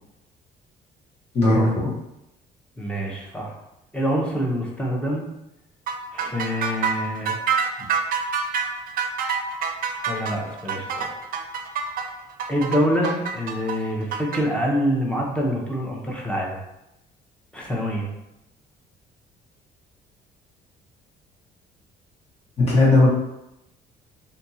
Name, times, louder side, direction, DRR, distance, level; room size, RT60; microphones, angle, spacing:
voice 1, 1.3-1.9 22.6-23.1, left 2 dB, 40° left, -7 dB, 1.4 m, -17 dB
voice 2, 2.8-3.5 3.9-5.3 6.1-7.4 10.1-11.1 12.5-16.6 17.5-18.1, equal, 5° left, -2 dB, 0.8 m, -25 dB
sound 1, 5.9-14.4, right 6 dB, 60° right, 0.5 m, -26 dB
3.4 x 2.7 x 2.8 m, 0.87 s
cardioid pair, 110°, 17 cm